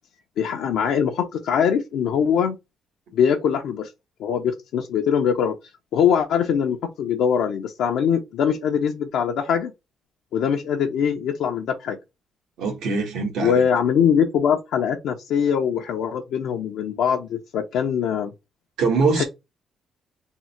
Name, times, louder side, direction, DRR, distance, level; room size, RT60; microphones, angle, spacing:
voice 1, 0.4-2.6 3.1-3.9 4.2-5.5 5.9-9.7 10.3-12.0 13.4-18.3 19.1-19.2, left 7 dB, 80° left, 0.6 m, -22 dB
voice 2, 12.6-13.6 18.8-19.2, right 4 dB, 85° right, 1.3 m, -22 dB
3.6 x 2.1 x 4.2 m
cardioid pair, 90°, 0 cm